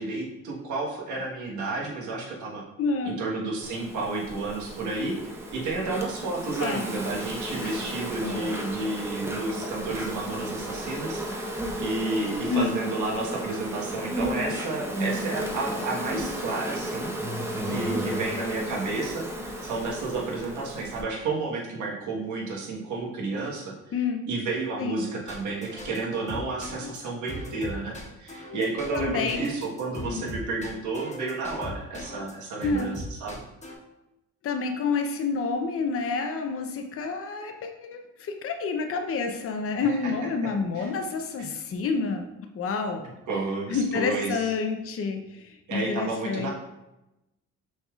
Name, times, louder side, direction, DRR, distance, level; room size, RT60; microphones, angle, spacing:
voice 1, 0.0-2.6 3.0-11.5 11.8-17.1 17.6-33.4 39.8-40.1 40.7-40.9 41.4-41.5 43.0-44.5 45.7-46.5, right 3 dB, 75° right, -3 dB, 1.3 m, -31 dB
voice 2, 2.8-3.2 6.6-6.8 7.6-7.8 8.2-8.7 12.5-12.7 23.9-24.2 24.8-25.0 28.9-29.5 30.1-30.3 32.6-33.0 34.4-42.3 42.5-43.0 43.7-46.5, left 4 dB, 50° left, 5 dB, 0.7 m, -29 dB
Insect, 3.6-21.0, equal, 10° right, 0.8 m, -33 dB
sound 1, 25.3-32.3 32.6-33.7, left 2 dB, 25° left, 1.2 m, -39 dB
6.2 x 3.5 x 2.4 m, 0.93 s
cardioid pair, 90°, 30 cm